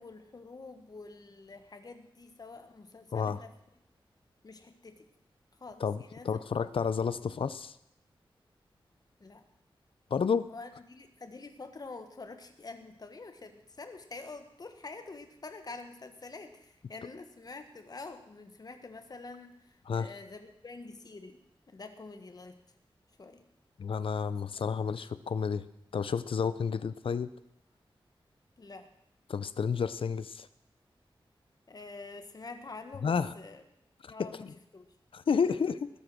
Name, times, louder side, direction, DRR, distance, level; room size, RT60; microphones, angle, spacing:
voice 1, 0.0-3.5 4.4-5.0 5.6-6.3 9.2-9.4 10.5-21.4 21.7-22.6 23.2-23.4 28.6-28.9 31.7-33.6 34.1-34.9, left 3 dB, 45° left, 7 dB, 1.5 m, -47 dB
voice 2, 6.2-7.8 10.1-10.5 19.9-20.1 23.8-25.7 25.9-27.3 29.3-30.5 33.0-33.3 34.0-34.5 35.1-35.7, left 6 dB, 75° left, 15 dB, 0.6 m, -30 dB
20.0 x 8.0 x 6.2 m, 0.77 s
wide cardioid pair, 115°, 9 cm